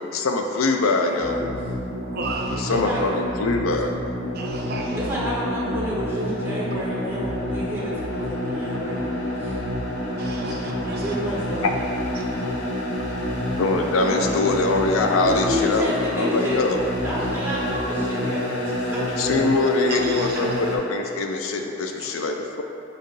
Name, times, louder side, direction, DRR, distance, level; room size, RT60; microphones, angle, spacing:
voice 1, 0.1-1.4 2.5-3.9 10.5-10.6 11.6-11.8 12.4-12.5 13.3-16.8 19.2-22.6, left 3 dB, 85° left, 4 dB, 0.4 m, -23 dB
voice 2, 1.0-1.6 2.7-3.1 5.0-9.6 11.0-11.7 13.9-14.4 15.0-16.7 17.0-19.0, equal, 10° right, -6 dB, 0.8 m, -30 dB
sound 1, 1.2-20.8, equal, 60° left, 0.7 m, -28 dB
voice 3, 2.1-2.8 4.3-5.0 10.2-11.1 17.1-17.3 19.9-20.4, right 3 dB, 50° right, 0 dB, 0.5 m, -33 dB
4.5 x 2.4 x 4.7 m, 2.6 s
head